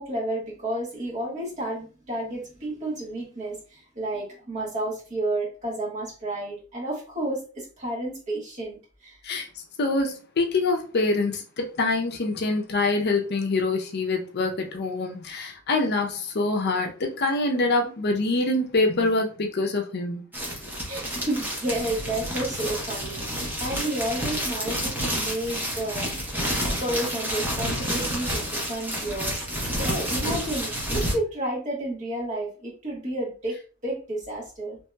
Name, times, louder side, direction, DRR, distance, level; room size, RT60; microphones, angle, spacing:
voice 1, 0.0-9.2 20.8-34.8, right 1 dB, 35° right, 1.4 m, -31 dB
voice 2, 9.8-20.2, left 2 dB, 50° left, 0.5 m, -25 dB
sound 1, 20.3-31.1, equal, 10° right, 0.8 m, -29 dB
2.9 x 2.7 x 2.2 m
head